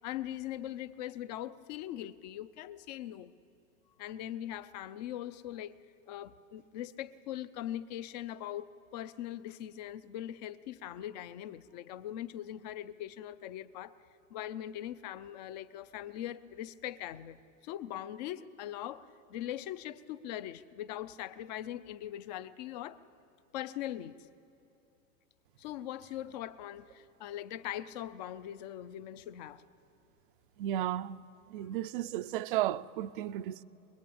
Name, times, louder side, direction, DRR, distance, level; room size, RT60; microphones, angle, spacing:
voice 1, 0.0-3.3 4.0-5.8 6.1-13.9 14.3-23.0 23.5-24.2 25.6-29.6, left 12 dB, 35° left, 0.6 m, -41 dB
voice 2, 30.6-31.2 31.5-33.6, right 13 dB, 40° right, 0.5 m, -34 dB
23.5 x 22.0 x 8.6 m
supercardioid pair, 180°, 40 cm